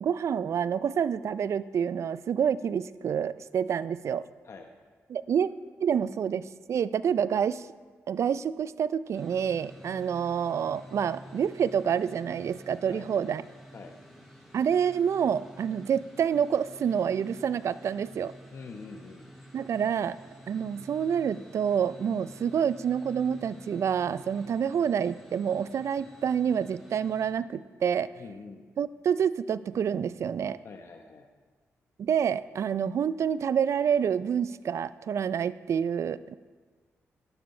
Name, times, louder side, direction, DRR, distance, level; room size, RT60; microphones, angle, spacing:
voice 1, 0.0-4.2 5.1-5.5 5.8-7.7 8.1-13.4 14.5-18.3 19.5-20.2 20.5-28.1 28.8-30.6 32.0-36.3, right 8 dB, 65° right, 16 dB, 0.4 m, -28 dB
Luminus inside windmill, 9.1-27.3, equal, ahead, 3.7 m, -50 dB
voice 2, 9.6-10.0 12.9-13.1 13.7-14.0 18.5-19.3 28.1-28.7 30.6-31.3, left 4 dB, 60° left, 3 dB, 0.9 m, -45 dB
12.0 x 12.0 x 3.3 m, 1.4 s
cardioid pair, 60°, 5 cm